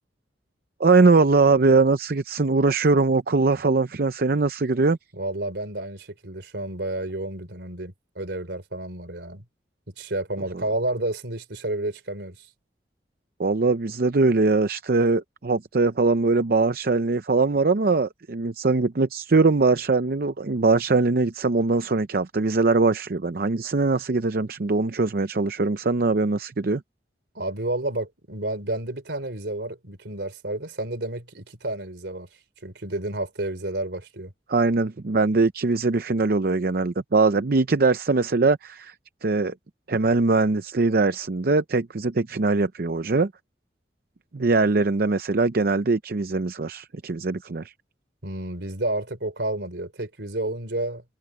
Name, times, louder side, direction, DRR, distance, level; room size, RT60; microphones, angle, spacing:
voice 1, 0.8-5.0 10.5-10.6 13.4-26.8 34.5-38.9 39.2-39.5 39.9-43.3 44.3-47.7, right 3 dB, 55° right, 0.6 m, -21 dB
voice 2, 5.1-9.4 10.0-12.5 27.3-32.3 32.6-34.3 48.2-51.0, right 1 dB, 70° right, 3.8 m, -30 dB
head